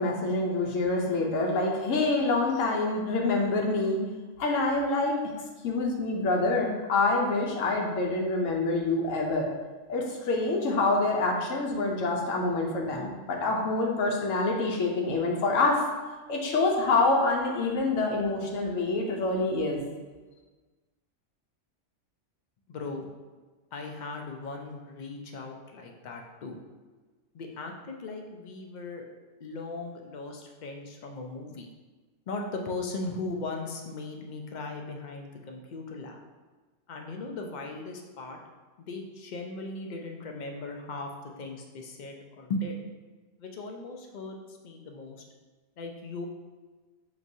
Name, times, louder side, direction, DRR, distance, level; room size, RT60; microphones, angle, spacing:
voice 1, 0.0-4.1 4.4-5.3 5.6-9.5 9.9-15.9 16.3-19.8, left 3 dB, 85° left, 0 dB, 1.0 m, -26 dB
voice 2, 22.7-23.1 23.7-26.6 27.3-29.1 29.4-31.7 32.3-36.2 36.9-38.4 38.8-42.8 43.4-45.2 45.8-46.3, left 3 dB, 65° left, 2 dB, 0.4 m, -38 dB
6.0 x 3.0 x 2.6 m, 1.3 s
omnidirectional pair, 1.3 m